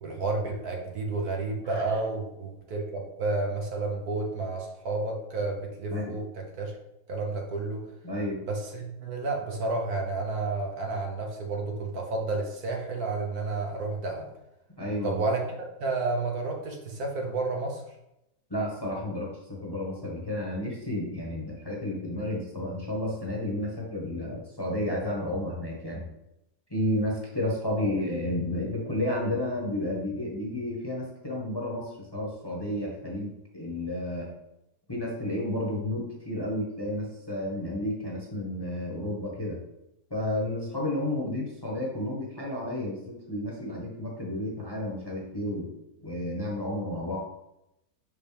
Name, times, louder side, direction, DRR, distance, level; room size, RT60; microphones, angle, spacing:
voice 1, 0.0-6.7 7.1-7.9 8.5-14.3 15.0-15.4 15.8-17.8, right 3 dB, 65° right, 1 dB, 1.5 m, -31 dB
voice 2, 8.0-8.4 14.8-15.2 18.5-26.0 26.7-34.3 34.9-39.6 40.1-45.7 46.0-47.2, left 1 dB, 15° left, -3 dB, 1.2 m, -31 dB
5.7 x 5.3 x 3.4 m, 0.86 s
omnidirectional pair, 1.8 m